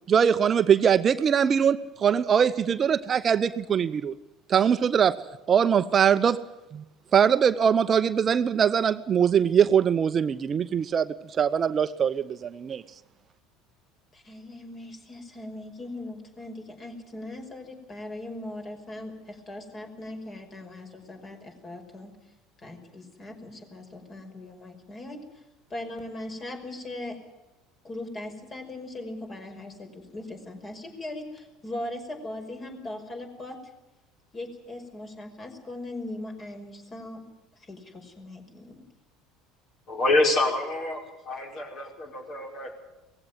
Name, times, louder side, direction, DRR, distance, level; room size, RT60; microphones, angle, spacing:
voice 1, 0.1-4.1 4.5-5.2 5.5-6.4 6.7-6.8 7.1-12.8, right 7 dB, 40° right, 12 dB, 0.8 m, -22 dB
voice 2, 14.1-22.1 22.6-25.4 25.7-27.2 27.8-33.7 34.3-37.2 37.6-38.8, left 1 dB, 30° left, 4 dB, 5.5 m, -39 dB
voice 3, 39.9-42.7, left 2 dB, 50° left, 2 dB, 5.5 m, -26 dB
19.0 x 16.0 x 9.4 m, 1.0 s
hypercardioid pair, 70°, 0 cm